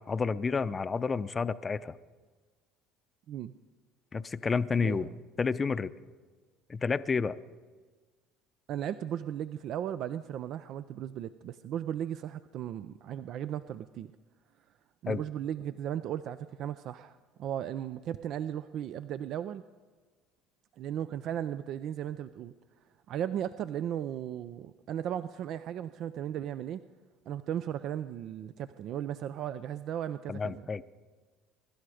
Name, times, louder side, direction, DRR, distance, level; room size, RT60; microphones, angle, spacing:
voice 1, 0.1-2.0 4.1-5.1 5.4-5.9 6.7-7.4 15.1-15.2 30.3-30.8, left 5 dB, 30° left, 14 dB, 0.6 m, -30 dB
voice 2, 4.8-5.1 8.7-14.1 15.0-19.6 20.8-22.5 23.1-26.8 27.3-30.7, right 10 dB, 60° right, 13 dB, 0.4 m, -36 dB
23.5 x 12.0 x 4.9 m, 1.4 s
supercardioid pair, 85°, 0 cm